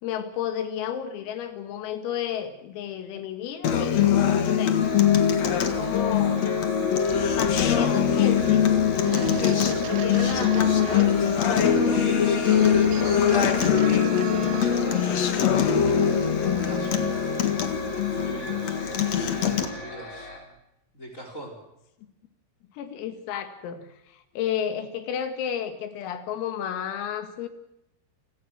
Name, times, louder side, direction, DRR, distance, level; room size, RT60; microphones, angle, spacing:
voice 1, 0.0-4.8 5.5-6.5 7.4-8.7 9.1-11.4 11.6-12.0 22.7-27.5, left 9 dB, 85° left, 8 dB, 4.7 m, -32 dB
Acoustic guitar, 3.6-19.6, left 8 dB, 70° left, 1.6 m, -22 dB
sound 1, 4.8-20.4, left 3 dB, 40° left, 6.4 m, -35 dB
sound 2, 7.1-15.0, right 12 dB, 85° right, 2.2 m, -37 dB
voice 2, 11.9-17.0 17.9-20.5 20.9-21.6, right 1 dB, 15° left, 3 dB, 4.5 m, -40 dB
29.0 x 17.5 x 6.3 m, 0.85 s
omnidirectional pair, 5.9 m